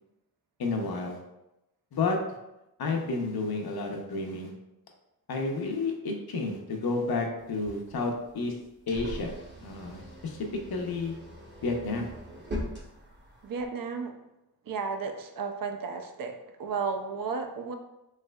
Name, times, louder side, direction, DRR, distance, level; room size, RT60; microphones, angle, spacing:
voice 1, 0.6-1.2 1.9-2.2 2.8-4.5 5.3-8.5 8.9-9.4 9.6-10.4 10.7-11.2 11.6-12.1, left 3 dB, 70° left, 2 dB, 0.6 m, -31 dB
sound 1, 7.4-13.7, equal, 30° right, 0.8 m, -42 dB
voice 2, 13.4-14.1 14.7-16.3 16.6-17.7, right 5 dB, 60° right, 5 dB, 0.5 m, -33 dB
3.2 x 3.1 x 2.2 m, 0.92 s
wide cardioid pair, 95°, 39 cm